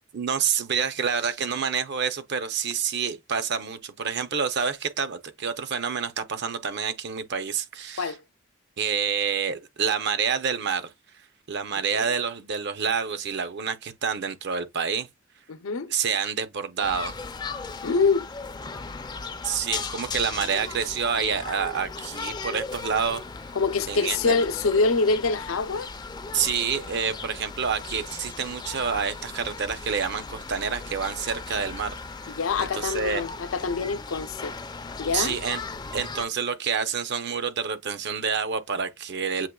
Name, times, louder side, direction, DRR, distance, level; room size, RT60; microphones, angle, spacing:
voice 1, 0.1-8.1 8.8-10.9 11.5-15.1 15.9-17.1 19.4-23.2 23.9-24.4 26.3-32.0 32.6-33.2 35.1-35.6 35.9-39.5, right 6 dB, 55° right, 0.6 m, -28 dB
voice 2, 15.5-15.9 17.8-18.3 23.6-25.9 32.3-34.5 35.0-35.3, left 4 dB, 85° left, 0.6 m, -25 dB
sound 1, 16.8-36.3, left 4 dB, 20° left, 0.4 m, -37 dB
7.4 x 2.9 x 2.3 m
head